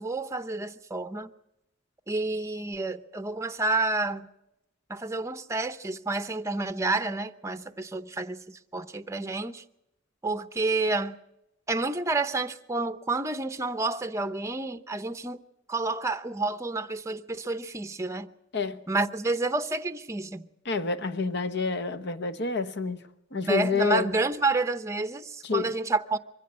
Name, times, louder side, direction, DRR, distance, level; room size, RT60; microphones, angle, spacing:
voice 1, 0.0-1.3 2.1-4.3 4.9-9.6 10.2-11.2 11.7-15.4 15.7-18.3 18.9-20.5 23.4-26.2, right 3 dB, 15° right, 0.7 m, -29 dB
voice 2, 20.6-23.0 23.3-24.1 25.4-25.7, left 4 dB, 55° left, 1.1 m, -28 dB
23.5 x 15.5 x 7.5 m
head